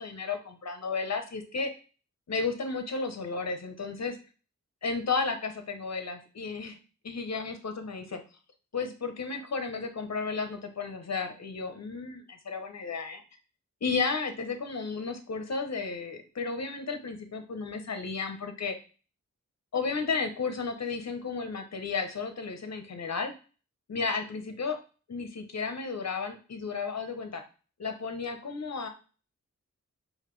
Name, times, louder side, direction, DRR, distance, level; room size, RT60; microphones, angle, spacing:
voice 1, 0.0-1.7 2.3-4.2 4.8-6.8 7.0-8.2 8.7-13.2 13.8-18.8 19.7-23.3 23.9-24.8 25.1-27.4 27.8-28.9, left 4 dB, 55° left, 7 dB, 0.9 m, -33 dB
4.8 x 2.7 x 3.1 m, 0.35 s
cardioid pair, 55°, 31 cm